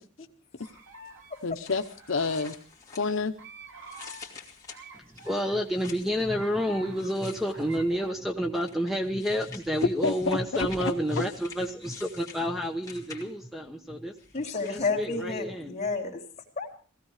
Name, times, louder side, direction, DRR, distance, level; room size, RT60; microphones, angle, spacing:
sound 1, 0.6-8.1, right 1 dB, 80° right, 3.6 m, -48 dB
voice 1, 1.4-2.5 3.0-3.3 10.0-10.9, left 4 dB, 75° left, 6 dB, 0.9 m, -29 dB
sound 2, 1.4-3.5 3.8-6.2 6.9-8.0 8.5-13.5 14.2-14.9, left 6 dB, 15° left, 2.6 m, -48 dB
voice 2, 4.9-14.1 14.7-15.8, equal, ahead, 4 dB, 1.0 m, -29 dB
voice 3, 14.3-16.2 16.6-16.8, left 3 dB, 35° left, -1 dB, 3.5 m, -30 dB
17.5 x 16.0 x 4.9 m, 0.43 s
head